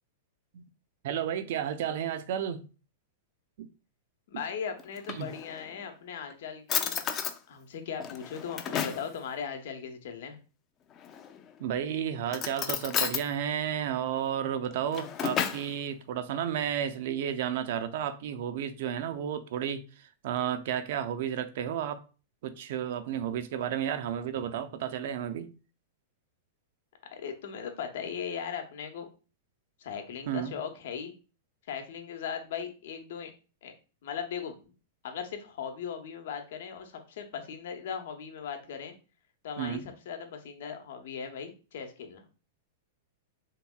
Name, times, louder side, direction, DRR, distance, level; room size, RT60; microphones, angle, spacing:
voice 1, 1.0-2.7 3.6-3.7 4.3-4.4 5.1-5.3 11.6-22.1 22.4-25.5 30.3-30.5 39.6-39.9, right 9 dB, 60° right, 0.4 m, -32 dB
voice 2, 4.3-7.0 7.5-10.4 27.1-29.1 29.8-31.1 31.7-33.3 33.6-33.7 34.0-34.6 35.0-38.9 39.4-42.2, left 7 dB, 60° left, 0.8 m, -38 dB
Drawer open or close, 4.8-5.7 6.3-6.4 6.7-7.4 8.0-9.1 11.0-11.5 12.3-13.3 14.6-15.7, left 8 dB, 30° left, 0.4 m, -32 dB
3.4 x 2.8 x 2.2 m
figure-of-eight pair, 100°, 0 cm